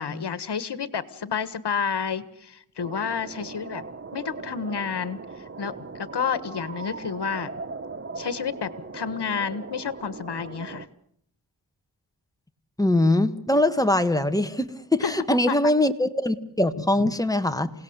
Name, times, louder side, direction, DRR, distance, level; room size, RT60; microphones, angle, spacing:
voice 1, 0.0-3.9 4.1-7.5 8.2-10.9 15.0-15.1 15.5-15.6 16.8-17.1, left 6 dB, 75° left, 14 dB, 1.6 m, -30 dB
sound 1, 2.8-10.9, right 4 dB, 30° right, 1.0 m, -39 dB
voice 2, 12.8-17.7, left 1 dB, 10° left, 8 dB, 1.6 m, -22 dB
28.0 x 18.5 x 8.1 m, 0.70 s
wide cardioid pair, 105°, 41 cm